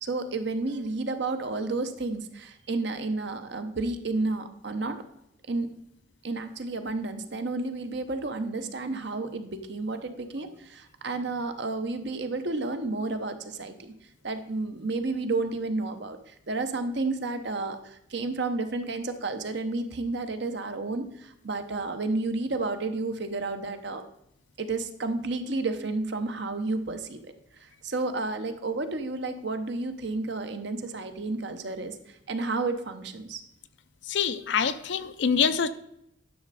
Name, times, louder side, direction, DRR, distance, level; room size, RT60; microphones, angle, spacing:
voice 1, 0.0-5.0 5.5-5.7 6.2-13.9 14.2-24.0 24.6-27.2 27.6-32.0 32.3-33.4, right 3 dB, 60° right, 8 dB, 0.9 m, -31 dB
voice 2, 34.1-35.7, left 6 dB, 60° left, 12 dB, 0.5 m, -25 dB
11.0 x 6.3 x 4.1 m, 0.79 s
head